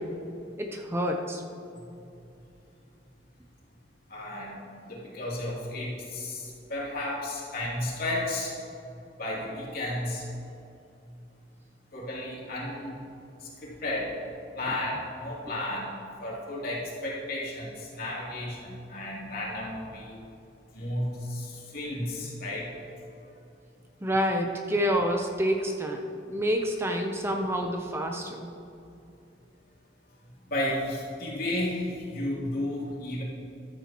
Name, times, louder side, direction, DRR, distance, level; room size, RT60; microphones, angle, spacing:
voice 1, 0.6-1.4 24.0-28.5, equal, 15° right, 3 dB, 0.7 m, -28 dB
voice 2, 4.1-8.6 9.2-10.2 11.9-13.0 13.6-14.1 14.5-20.2 20.7-22.7 30.5-33.2, left 1 dB, 55° left, -5 dB, 3.0 m, -33 dB
14.5 x 12.0 x 3.0 m, 2.7 s
head